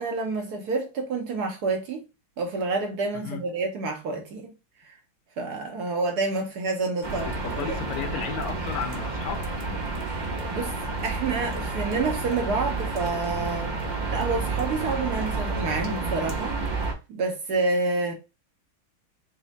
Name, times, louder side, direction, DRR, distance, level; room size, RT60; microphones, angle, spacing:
voice 1, 0.0-2.0 2.4-4.5 4.8-4.9 5.4-7.8 10.5-10.7 11.0-13.7 14.1-16.5 17.1-18.1, right 3 dB, 65° right, 1.1 m, -28 dB
sound 1, 7.0-16.9, right 3 dB, 45° right, 0.6 m, -30 dB
voice 2, 7.3-9.5, left 8 dB, 80° left, 1.4 m, -34 dB
4.1 x 2.2 x 4.0 m
omnidirectional pair, 2.2 m